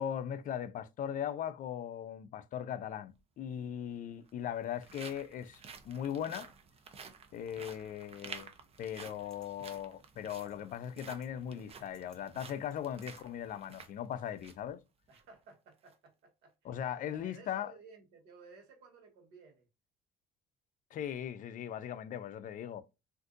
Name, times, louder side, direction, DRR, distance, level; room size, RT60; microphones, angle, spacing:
voice 1, 0.0-6.5 7.3-8.5 8.8-14.8 16.6-17.7 20.9-22.8, left 9 dB, 50° left, 0.4 m, -39 dB
sound 1, 3.1-3.2 4.1-14.7 15.1-15.2 15.7-15.9, right 5 dB, 35° right, 0.6 m, -52 dB
sound 2, 8.4-8.5 9.1-9.5 10.3-10.6 11.0-11.3 11.7-12.2 12.7-13.2, left 1 dB, 5° left, 0.7 m, -65 dB
voice 2, 15.1-16.7 17.1-19.7, right 4 dB, 90° right, 1.2 m, -57 dB
3.6 x 2.5 x 2.5 m
cardioid pair, 110°, 17 cm